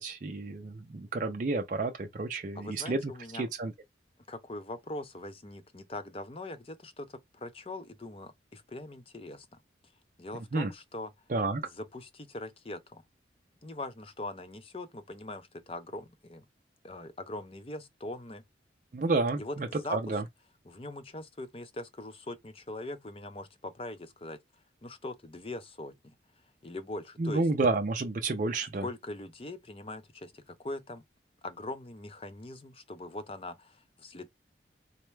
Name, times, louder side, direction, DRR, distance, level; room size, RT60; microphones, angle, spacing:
voice 1, 0.0-3.7 10.5-10.7 11.3-11.6 18.9-20.2 27.2-28.9, right 3 dB, 45° right, 0.4 m, -30 dB
voice 2, 2.5-3.5 4.3-9.6 10.2-11.1 11.6-13.0 13.6-16.5 16.8-18.4 19.4-20.1 20.7-24.4 24.8-26.1 26.6-27.4 28.8-31.0 31.4-34.3, left 2 dB, 30° left, 0.5 m, -41 dB
4.1 x 2.2 x 3.1 m
head